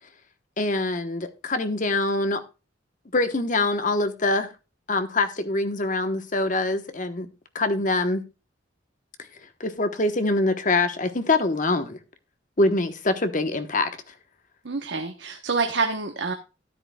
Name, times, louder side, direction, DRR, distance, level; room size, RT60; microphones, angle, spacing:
voice 1, 0.6-2.4 3.1-4.5 4.9-7.3 7.5-8.2 9.2-9.3 9.6-12.0 12.6-13.9, left 2 dB, 40° left, 1.1 m, -24 dB
voice 2, 14.6-16.3, right 4 dB, 65° right, 1.0 m, -27 dB
13.0 x 9.9 x 2.3 m
head